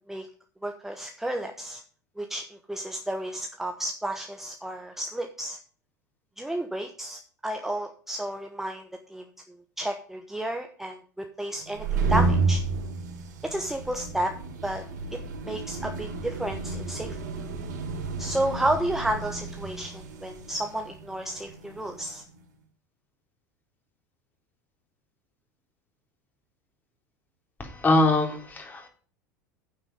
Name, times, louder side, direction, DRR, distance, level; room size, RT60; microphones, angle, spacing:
voice 1, 0.6-1.8 2.2-5.6 6.4-9.3 9.8-12.6 13.4-14.3 14.6-14.8 15.4-17.2 18.2-22.2, right 1 dB, 5° right, 4 dB, 1.2 m, -32 dB
sound 1, 11.6-22.1, right 3 dB, 70° right, 3.3 m, -31 dB
voice 2, 27.8-28.9, left 2 dB, 20° left, 4 dB, 3.3 m, -22 dB
9.5 x 8.1 x 5.1 m, 0.43 s
hypercardioid pair, 85°, 10 cm